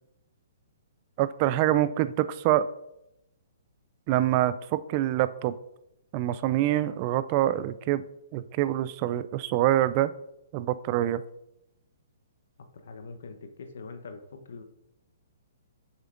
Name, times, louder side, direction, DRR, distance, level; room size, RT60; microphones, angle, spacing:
voice 1, 1.2-2.7 4.1-5.5 6.1-8.0 8.3-10.1 10.5-11.2, right 13 dB, 40° right, 15 dB, 0.3 m, -25 dB
voice 2, 12.8-14.2 14.5-14.6, left 4 dB, 70° left, 7 dB, 0.9 m, -42 dB
7.3 x 6.8 x 2.5 m, 0.85 s
hypercardioid pair, 135°, 0 cm